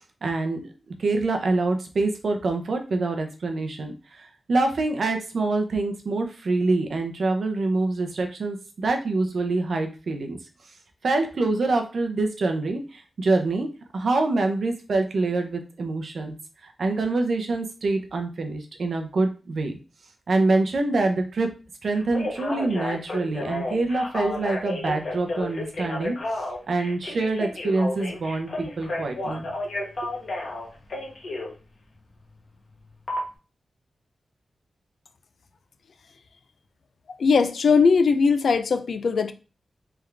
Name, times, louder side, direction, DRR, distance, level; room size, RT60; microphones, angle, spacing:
voice 1, 0.2-0.7 1.0-10.4 11.0-13.7 13.9-16.3 16.6-19.7 20.3-21.5 21.8-26.2 26.7-29.5 30.0-30.1, right 3 dB, 55° right, 0.7 m, -25 dB
Telephone, 21.9-31.5 33.1-33.2, left 2 dB, 45° left, 1.2 m, -31 dB
voice 2, 37.2-39.3, left 5 dB, 65° left, 0.4 m, -19 dB
3.5 x 3.5 x 3.3 m
wide cardioid pair, 165°, 0 cm